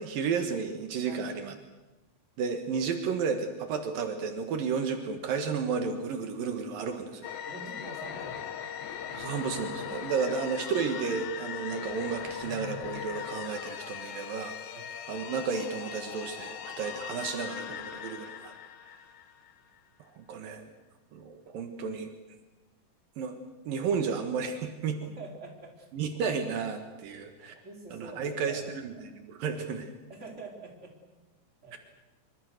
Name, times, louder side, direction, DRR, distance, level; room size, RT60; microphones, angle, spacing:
voice 1, 0.0-1.5 2.4-7.1 9.1-14.6 15.1-18.5 20.2-20.7 21.1-22.1 23.2-23.4 23.7-25.0 25.9-27.5 27.9-29.8 31.7-31.8, right 5 dB, 75° right, 6 dB, 3.3 m, -32 dB
voice 2, 1.1-1.5 7.5-8.7 14.7-14.8 25.2-26.2 27.4-29.1 29.5-29.6 30.1-31.0 31.6-31.8, right 3 dB, 20° right, 1 dB, 4.4 m, -46 dB
sound 1, 7.2-19.7, left 9 dB, 80° left, 3.2 m, -40 dB
25.5 x 25.0 x 6.6 m, 1.1 s
omnidirectional pair, 4.1 m